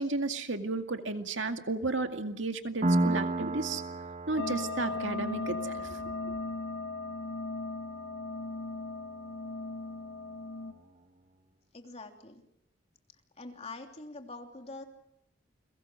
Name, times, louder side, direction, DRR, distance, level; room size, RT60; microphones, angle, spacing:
voice 1, 0.0-3.8 4.3-6.0 6.3-6.4, right 3 dB, 90° right, 5 dB, 2.2 m, -33 dB
Piano, 2.8-10.2, right 2 dB, 40° right, 1.3 m, -35 dB
sound 1, 4.4-10.7, left 3 dB, 70° left, 2.0 m, -37 dB
voice 2, 11.7-12.4 13.4-14.8, left 3 dB, 35° left, 3 dB, 3.2 m, -44 dB
29.5 x 22.5 x 6.4 m, 0.78 s
head